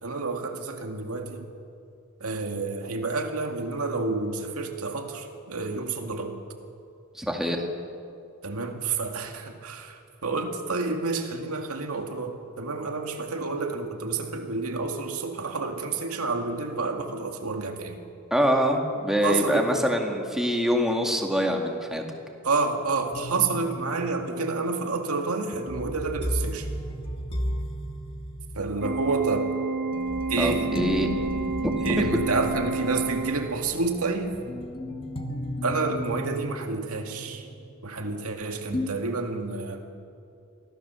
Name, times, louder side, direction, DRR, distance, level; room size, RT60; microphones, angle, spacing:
voice 1, 0.0-1.5 2.2-6.4 8.4-18.0 19.2-19.7 22.4-26.7 28.6-29.5 30.3-30.7 31.8-34.3 35.6-37.5 37.8-39.8, right 3 dB, 80° right, 4 dB, 2.1 m, -29 dB
voice 2, 7.2-7.6 18.3-22.0 30.4-31.2 31.6-32.1, equal, ahead, 2 dB, 2.0 m, -25 dB
sound 1, 23.1-38.4 38.7-38.9, left 1 dB, 25° left, 1.3 m, -35 dB
Organ, 28.8-33.9, right 4 dB, 50° right, 1.2 m, -30 dB
24.0 x 16.0 x 7.0 m, 2.5 s
head